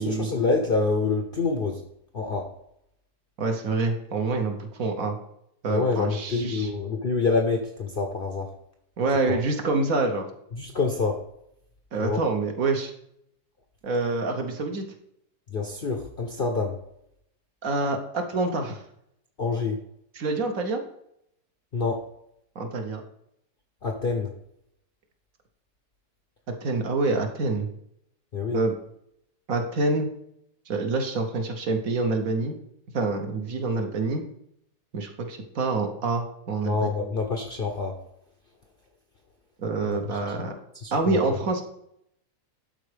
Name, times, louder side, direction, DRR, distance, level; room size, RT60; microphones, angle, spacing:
voice 1, 0.0-1.8 2.1-2.5 5.7-8.5 9.3-9.4 10.6-11.2 12.0-12.2 15.5-16.8 19.4-19.8 21.7-22.1 23.8-24.3 28.3-28.6 36.6-38.0 39.9-40.3 40.7-41.2, left 4 dB, 50° left, 3 dB, 0.7 m, -27 dB
voice 2, 3.4-5.2 5.6-6.7 9.0-10.3 11.9-12.9 13.8-14.8 17.6-18.8 20.2-20.8 22.5-23.0 26.6-27.7 28.5-28.7 29.5-30.1 30.7-32.6 32.9-34.2 34.9-36.9 39.6-40.5 40.9-41.6, right 3 dB, 60° right, 4 dB, 1.3 m, -26 dB
11.5 x 4.4 x 3.3 m, 0.76 s
omnidirectional pair, 1.8 m